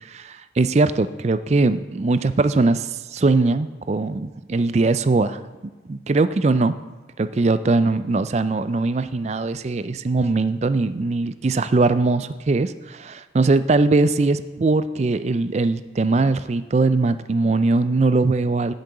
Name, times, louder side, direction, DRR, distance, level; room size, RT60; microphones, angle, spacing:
voice 1, 0.1-5.4 5.9-6.8 7.2-18.7, right 3 dB, 35° right, 13 dB, 0.4 m, -21 dB
8.4 x 6.6 x 7.9 m, 1.3 s
head